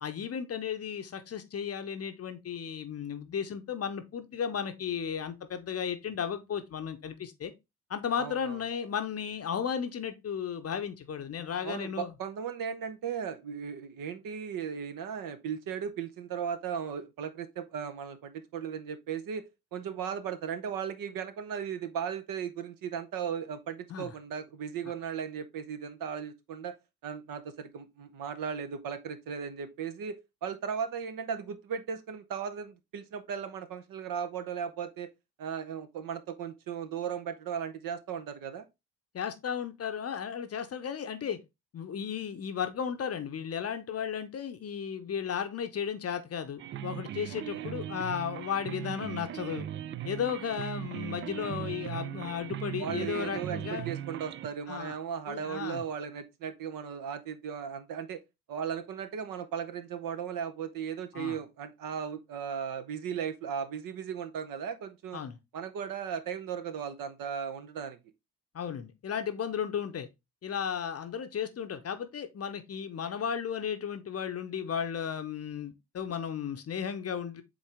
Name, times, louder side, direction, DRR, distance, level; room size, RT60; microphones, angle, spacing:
voice 1, 0.0-7.5 7.9-12.1 23.9-24.1 39.1-41.4 41.7-49.7 50.0-53.9 54.7-55.0 55.3-55.8 61.1-61.4 65.1-65.4 68.5-70.1 70.4-77.4, left 7 dB, 30° left, 0.9 m, -34 dB
voice 2, 8.2-8.6 11.6-26.8 27.0-35.1 35.4-38.7 47.3-47.7 52.8-58.2 58.5-65.2 65.5-68.0, right 7 dB, 45° right, 0.9 m, -37 dB
sound 1, 46.6-54.5, right 11 dB, 30° right, 0.4 m, -38 dB
7.2 x 3.9 x 3.3 m
figure-of-eight pair, 45°, 46 cm